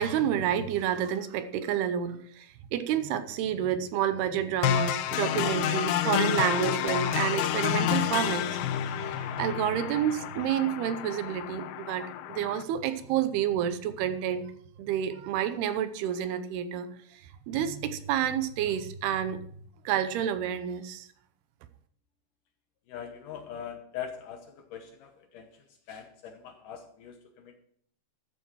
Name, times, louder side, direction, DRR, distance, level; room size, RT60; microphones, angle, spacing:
voice 1, 0.0-14.5 14.8-16.9 17.1-17.2 17.5-19.4 19.9-21.1, right 9 dB, 80° right, 10 dB, 2.8 m, -29 dB
sound 1, 4.6-12.6, left 11 dB, 85° left, 1.9 m, -29 dB
voice 2, 22.9-27.6, left 8 dB, 70° left, 5 dB, 2.2 m, -42 dB
14.0 x 9.2 x 4.6 m, 0.62 s
omnidirectional pair, 4.7 m